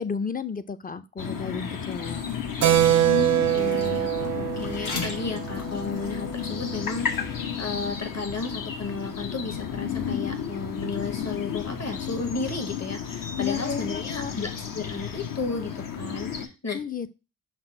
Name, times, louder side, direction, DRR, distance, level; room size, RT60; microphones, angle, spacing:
voice 1, 0.0-2.3 13.4-14.3 16.7-17.1, left 6 dB, 25° left, 12 dB, 0.4 m, -32 dB
sound 1, 1.2-16.5, left 7 dB, 60° left, 0.8 m, -33 dB
sound 2, 1.6-7.2, left 3 dB, 85° left, 1.0 m, -41 dB
Keyboard (musical), 2.6-6.7, right 12 dB, 50° right, 0.4 m, -24 dB
voice 2, 3.0-16.8, left 3 dB, 45° left, 6 dB, 1.2 m, -33 dB
5.8 x 2.0 x 4.3 m, 0.30 s
cardioid pair, 50°, 37 cm